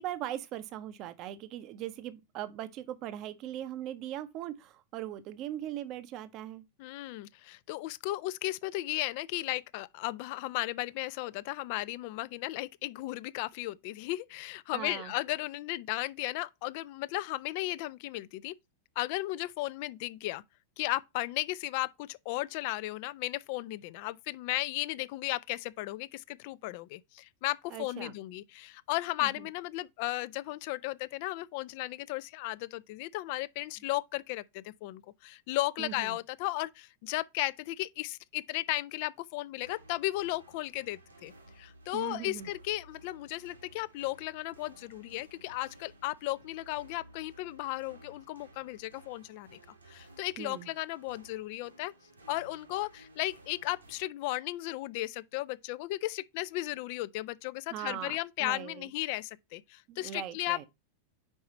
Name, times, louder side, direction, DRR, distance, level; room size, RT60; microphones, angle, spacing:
voice 1, 0.0-6.6 14.7-15.1 27.7-28.1 29.2-29.5 35.8-36.2 41.9-42.5 50.4-50.7 57.7-58.9 59.9-60.7, right 12 dB, 40° right, 0.6 m, -40 dB
voice 2, 6.8-18.6 19.0-20.4 20.8-49.6 49.9-51.9 52.3-60.6, left 18 dB, 45° left, 0.3 m, -35 dB
sound 1, 39.6-54.0, right 1 dB, 80° right, 1.3 m, -57 dB
5.4 x 4.7 x 4.2 m
figure-of-eight pair, 90°, 0 cm